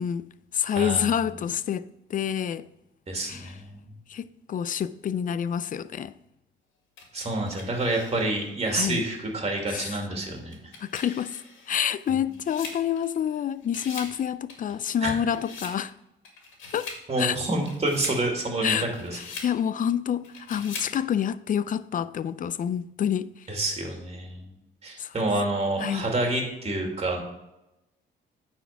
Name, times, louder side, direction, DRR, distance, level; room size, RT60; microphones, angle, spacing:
voice 1, 0.0-2.7 3.3-3.5 4.1-6.1 8.7-9.0 9.7-9.9 10.8-11.4 11.7-15.9 16.7-16.9 17.2-17.4 18.6-18.9 19.4-23.3 25.0-25.1 25.8-26.0, left 9 dB, 45° left, 0.4 m, -28 dB
voice 2, 0.7-1.1 3.1-3.8 7.1-10.6 15.0-15.1 17.1-19.2 23.5-24.5 24.8-27.2, right 2 dB, 30° right, 2.4 m, -28 dB
sound 1, 7.0-8.5 9.1-9.2 10.4-13.4 13.6-14.2 14.5-15.8 16.2-17.0 17.5-18.2 18.7-19.5 20.2-21.0, left 4 dB, 75° left, 2.0 m, -42 dB
9.1 x 4.3 x 5.8 m
cardioid pair, 90°, 20 cm